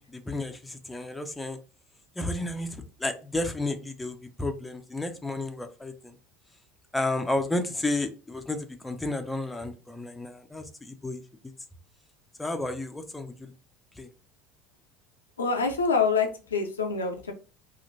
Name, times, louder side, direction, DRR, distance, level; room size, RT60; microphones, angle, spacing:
voice 1, 0.0-1.6 2.2-6.2 6.9-11.2 12.4-13.5 14.0-14.1, left 2 dB, 10° left, 6 dB, 0.5 m, -32 dB
voice 2, 15.4-17.3, left 5 dB, 75° left, 4 dB, 0.5 m, -26 dB
2.9 x 2.4 x 3.8 m, 0.35 s
figure-of-eight pair, 70°, 0 cm